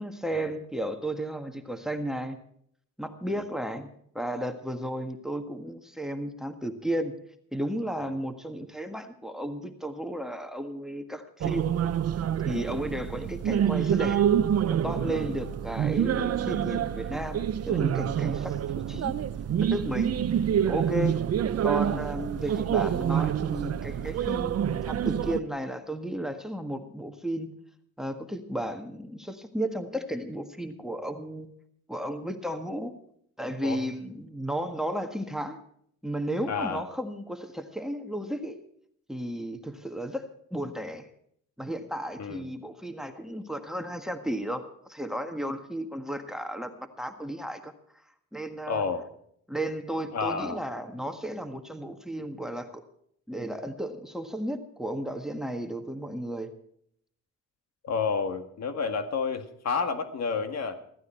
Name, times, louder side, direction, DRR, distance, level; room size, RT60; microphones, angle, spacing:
voice 1, 0.0-2.4 3.0-7.1 7.5-11.9 12.4-14.2 14.7-18.6 18.9-19.1 19.6-20.1 20.7-21.2 21.6-27.5 28.0-31.5 31.9-32.9 33.4-35.6 36.0-38.6 39.1-40.2 40.5-41.1 41.6-47.7 48.3-48.8 49.5-52.8 53.3-56.5, right 1 dB, ahead, 8 dB, 1.6 m, -34 dB
sound 1, 11.4-25.4, right 9 dB, 55° right, 0.8 m, -27 dB
voice 2, 36.5-36.8 42.2-42.5 48.7-49.1 50.1-50.6 57.8-60.8, left 5 dB, 60° left, 8 dB, 1.8 m, -30 dB
15.0 x 14.5 x 4.5 m, 0.67 s
cardioid pair, 90°, 30 cm